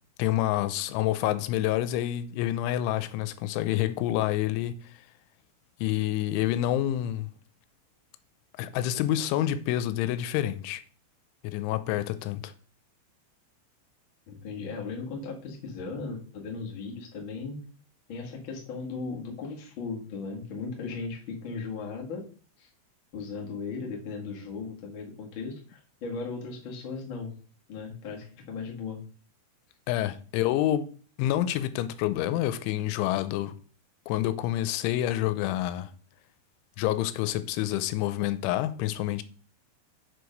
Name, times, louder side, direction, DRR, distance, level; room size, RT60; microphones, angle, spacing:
voice 1, 0.2-4.8 5.8-7.3 8.6-10.8 11.4-12.5 29.9-30.9 31.2-33.6 34.1-35.9 36.8-39.2, left 13 dB, 85° left, 3.0 m, -28 dB
voice 2, 14.3-17.6 18.1-22.2 22.6-22.7 23.1-27.3 27.7-29.0, left 4 dB, 60° left, 1.3 m, -37 dB
6.8 x 4.8 x 5.2 m
omnidirectional pair, 5.4 m